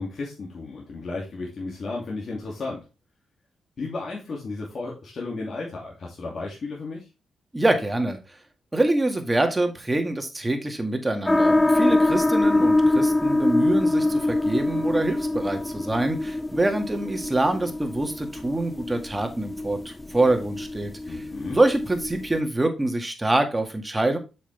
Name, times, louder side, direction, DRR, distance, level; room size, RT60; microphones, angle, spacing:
voice 1, 0.0-2.9 3.8-7.1 21.1-21.6, left 3 dB, 55° left, -3 dB, 2.6 m, -33 dB
voice 2, 7.5-8.2 8.7-21.2 21.5-24.2, right 2 dB, 15° right, 5 dB, 2.0 m, -25 dB
sound 1, 11.3-22.4, left 2 dB, 15° left, 0.5 m, -24 dB
7.1 x 6.0 x 3.4 m, 0.28 s
cardioid pair, 75°, 0 cm